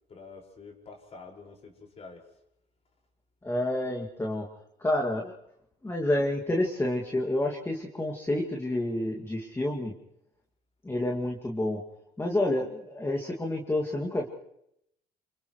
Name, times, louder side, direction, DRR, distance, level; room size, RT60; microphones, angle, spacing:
voice 1, 0.1-2.3, left 4 dB, 40° left, 0 dB, 5.6 m, -47 dB
voice 2, 3.4-4.5 4.8-5.3 5.8-9.9 10.8-11.8 12.2-14.3, left 1 dB, 15° left, 0 dB, 2.4 m, -29 dB
29.0 x 28.0 x 3.2 m, 0.77 s
cardioid pair, 110°, 17 cm